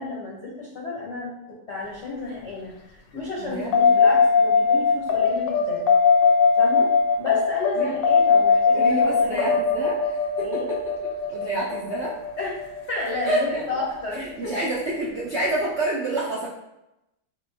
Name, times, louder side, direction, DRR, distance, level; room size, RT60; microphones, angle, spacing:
voice 1, 0.0-1.3 1.7-2.7 3.1-5.9 6.6-6.9 7.2-9.6 10.4-10.7 12.4-14.5, left 3 dB, 55° left, -5 dB, 0.8 m, -32 dB
voice 2, 3.4-4.0 7.7-7.9 8.7-10.1 10.4-10.8 11.3-12.1 13.2-13.6 14.2-16.5, right 2 dB, 75° right, -6 dB, 0.6 m, -28 dB
sound 1, 3.7-14.5, left 5 dB, 80° left, 1.2 m, -20 dB
4.0 x 3.1 x 2.6 m, 0.89 s
omnidirectional pair, 2.0 m